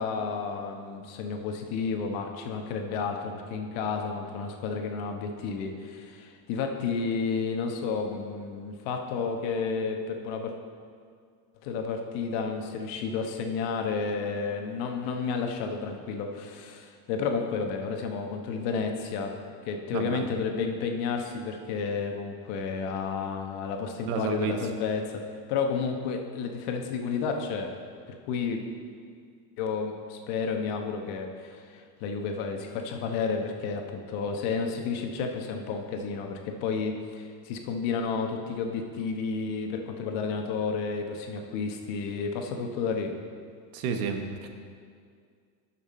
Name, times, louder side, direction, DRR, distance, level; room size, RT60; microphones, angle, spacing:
voice 1, 0.0-10.5 11.6-19.4 19.6-25.2 25.5-27.7 28.1-28.6 29.6-43.1, left 5 dB, 55° left, 4 dB, 1.1 m, -31 dB
voice 2, 19.9-20.2 24.1-24.6 43.7-44.5, right 6 dB, 75° right, 6 dB, 1.1 m, -31 dB
12.5 x 5.9 x 4.2 m, 2.1 s
supercardioid pair, 155°, 46 cm